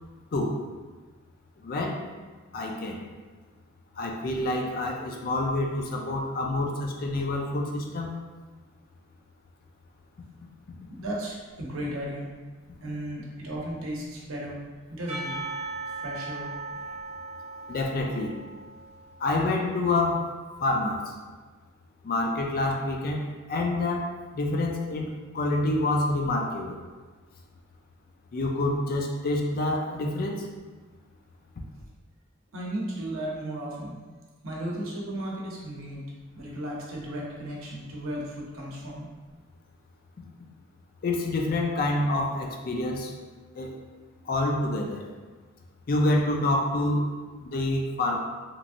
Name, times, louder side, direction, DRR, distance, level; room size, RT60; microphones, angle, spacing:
voice 1, 1.6-2.0 2.5-3.0 4.0-8.2 17.7-18.4 19.2-20.3 20.6-21.1 22.0-26.8 28.3-30.5 41.0-43.1 43.6-43.8 44.3-45.0 45.9-48.2, left 2 dB, 45° left, 1 dB, 0.3 m, -27 dB
voice 2, 11.0-12.3 12.8-14.6 14.9-15.3 16.0-17.0 17.5-17.6 32.5-33.9 34.4-36.1 36.3-39.1, right 1 dB, 80° right, -3 dB, 0.7 m, -35 dB
Percussion / Church bell, 15.1-19.6, right 3 dB, 30° right, 0.8 m, -38 dB
3.0 x 2.6 x 2.5 m, 1.4 s
head